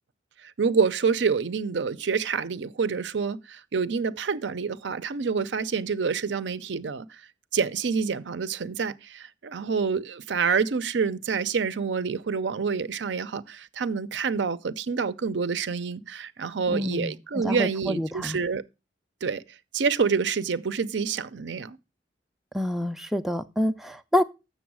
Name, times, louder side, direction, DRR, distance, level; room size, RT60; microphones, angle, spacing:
voice 1, 0.6-7.2 7.5-18.6 19.2-19.4 19.7-21.8, right 5 dB, 70° right, 0.6 m, -27 dB
voice 2, 16.7-18.4 22.5-24.2, left 1 dB, ahead, 0.4 m, -27 dB
7.1 x 6.6 x 6.1 m
head